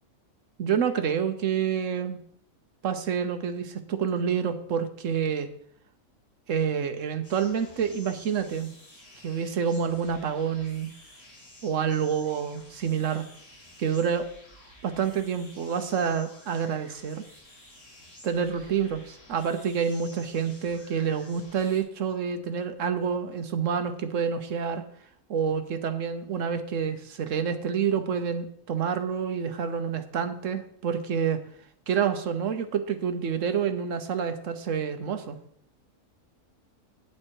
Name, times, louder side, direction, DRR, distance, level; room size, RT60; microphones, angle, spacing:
voice 1, 0.6-2.2 2.8-5.5 6.5-8.7 9.2-10.9 11.6-13.3 13.8-14.3 14.8-17.3 18.2-24.8 25.3-31.4 31.9-35.4, right 7 dB, 60° right, 9 dB, 1.1 m, -28 dB
sound 1, 7.2-21.8, left 1 dB, 40° left, 3.2 m, -52 dB
8.6 x 7.7 x 4.6 m, 0.64 s
omnidirectional pair, 1.6 m